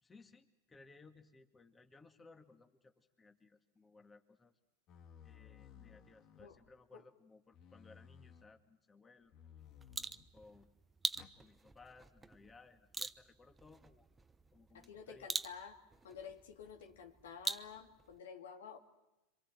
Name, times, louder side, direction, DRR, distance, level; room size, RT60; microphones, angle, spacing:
voice 1, 0.0-4.5 5.2-9.3 10.3-10.7 11.4-14.1 14.5-15.3, left 3 dB, 15° left, 6 dB, 2.1 m, -61 dB
sound 1, 4.9-6.8 7.5-8.5 9.3-10.4 11.1-11.4, left 8 dB, 45° left, 1.9 m, -58 dB
sound 2, 9.6-18.2, right 4 dB, 15° right, 0.9 m, -45 dB
voice 2, 14.7-18.8, left 7 dB, 75° left, 4 dB, 2.6 m, -51 dB
27.0 x 25.0 x 7.8 m, 0.96 s
hypercardioid pair, 90°, 0 cm